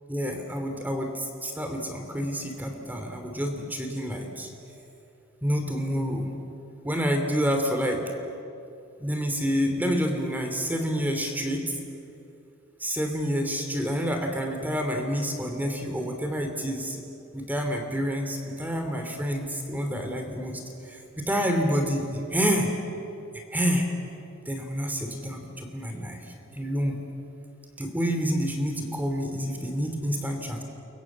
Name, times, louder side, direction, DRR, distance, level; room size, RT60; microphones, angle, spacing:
voice 1, 0.1-4.5 5.4-6.3 6.8-8.0 9.0-11.7 12.8-17.0 17.3-20.6 20.9-22.7 23.5-23.9 24.5-26.2 26.5-27.0 27.8-30.6, equal, 10° right, 4 dB, 2.9 m, -28 dB
30.0 x 23.0 x 7.4 m, 2.7 s
head